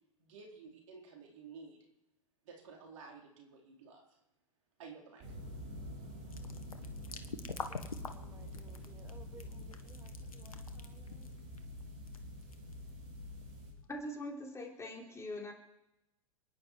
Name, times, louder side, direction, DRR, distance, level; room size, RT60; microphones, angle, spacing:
voice 1, 0.2-1.8 2.4-4.2 4.8-5.2, right 5 dB, 65° right, 0 dB, 4.4 m, -52 dB
sound 1, 5.2-13.7, left 1 dB, 45° right, 7.6 m, -47 dB
sound 2, 6.3-13.9, left 4 dB, 90° left, 1.5 m, -47 dB
voice 2, 7.7-11.3, right 5 dB, 15° right, 6 dB, 1.3 m, -60 dB
voice 3, 13.9-15.5, left 1 dB, 15° left, 1 dB, 3.7 m, -42 dB
28.0 x 10.5 x 4.7 m, 0.93 s
hypercardioid pair, 100°, 18 cm